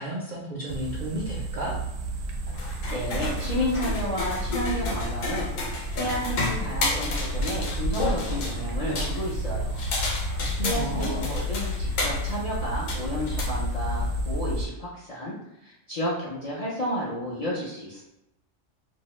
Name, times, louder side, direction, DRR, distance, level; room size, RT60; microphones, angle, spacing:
voice 1, 0.0-1.7 10.0-10.2 10.6-11.3, right 1 dB, 60° right, -4 dB, 0.5 m, -32 dB
sound 1, 0.7-14.7, equal, 75° right, 0.9 m, -31 dB
sound 2, 2.5-14.1, left 2 dB, 85° left, 1.0 m, -32 dB
voice 2, 2.9-9.8 10.6-18.0, equal, 45° left, -7 dB, 0.5 m, -32 dB
2.7 x 2.1 x 2.9 m, 0.89 s
omnidirectional pair, 1.3 m